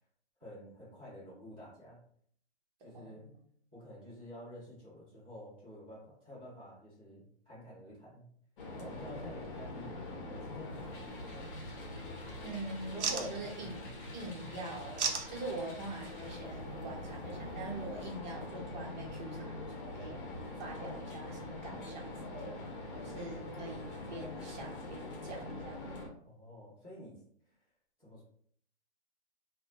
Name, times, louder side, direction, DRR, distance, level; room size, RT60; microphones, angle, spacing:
voice 1, 0.4-2.0 2.8-3.3 3.7-8.3 8.8-10.9 26.2-27.2 28.0-28.2, left 1 dB, 10° right, -13 dB, 0.4 m, -50 dB
voice 2, 2.9-3.4 12.4-13.9 14.1-20.2 20.6-26.1, right 2 dB, 40° right, -2 dB, 0.8 m, -44 dB
sound 1, 8.6-26.1, left 2 dB, 50° left, 0.7 m, -44 dB
sound 2, 10.7-18.0, right 5 dB, 80° right, 0.7 m, -42 dB
2.7 x 2.1 x 2.8 m, 0.63 s
hypercardioid pair, 165°, 34 cm